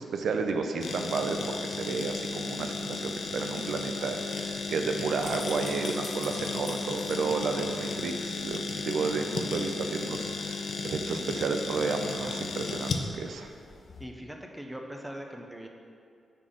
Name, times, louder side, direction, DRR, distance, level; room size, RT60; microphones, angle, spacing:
voice 1, 0.0-13.5, right 4 dB, 80° right, 5 dB, 0.4 m, -32 dB
sound 1, 0.8-14.1, left 4 dB, 55° left, 0.4 m, -34 dB
sound 2, 2.8-8.2 8.5-8.6, left 3 dB, 70° left, 1.0 m, -49 dB
voice 2, 14.0-15.7, equal, 5° right, 2 dB, 0.4 m, -41 dB
5.6 x 3.9 x 4.9 m, 2.3 s
wide cardioid pair, 175°, 0 cm